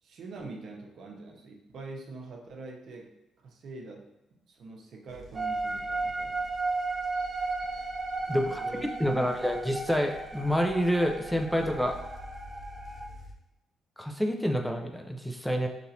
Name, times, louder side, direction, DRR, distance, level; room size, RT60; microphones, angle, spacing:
voice 1, 0.0-6.5 8.3-9.6, right 3 dB, 65° right, 1 dB, 0.7 m, -45 dB
sound 1, 5.1-13.3, left 1 dB, 45° left, 0.7 m, -49 dB
sound 2, 5.3-13.0, right 3 dB, 30° right, 0.7 m, -34 dB
voice 2, 8.3-12.0 14.0-15.7, equal, 5° left, 3 dB, 0.4 m, -28 dB
5.3 x 2.9 x 2.7 m, 0.91 s
cardioid pair, 90°, 0 cm